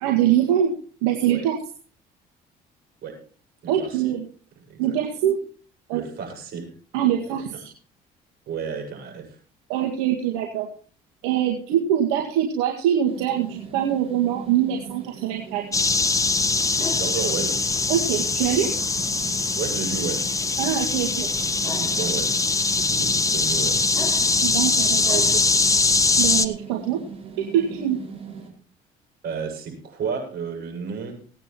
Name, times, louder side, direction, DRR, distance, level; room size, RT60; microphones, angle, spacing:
voice 1, 0.0-0.7 1.0-1.6 3.7-4.2 4.8-5.4 5.9-6.0 6.9-7.7 9.7-10.7 11.2-15.6 15.9-16.0 17.9-18.7 20.6-21.3 24.4-25.9 26.2-27.0 27.4-28.0, right 10 dB, 90° right, 1 dB, 2.0 m, -23 dB
voice 2, 3.6-4.0 4.7-5.0 5.9-6.7 8.5-9.4 16.6-17.6 19.6-20.2 21.3-22.4 22.7-23.8 29.2-31.2, right 6 dB, 65° right, 2 dB, 6.7 m, -32 dB
sound 1, 13.1-28.5, right 5 dB, 35° right, 4.7 m, -40 dB
sound 2, 15.7-26.4, left 3 dB, 20° left, 1.2 m, -22 dB
17.5 x 9.2 x 4.4 m, 0.41 s
supercardioid pair, 80°, 17 cm